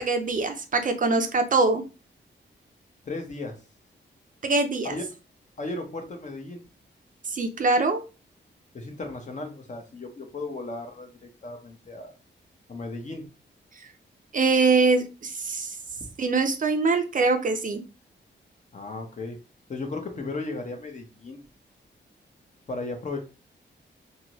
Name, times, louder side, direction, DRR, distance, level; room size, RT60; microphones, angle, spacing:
voice 1, 0.0-1.8 4.4-4.9 7.3-8.0 14.3-15.8 16.2-17.8, right 3 dB, 45° right, 6 dB, 0.5 m, -23 dB
voice 2, 3.1-3.6 4.8-5.0 5.6-6.6 8.7-12.1 12.7-13.3 18.7-19.4 19.7-21.4 22.7-23.2, left 2 dB, 40° left, 4 dB, 0.7 m, -35 dB
2.7 x 2.6 x 2.9 m, 0.31 s
wide cardioid pair, 115°, 20 cm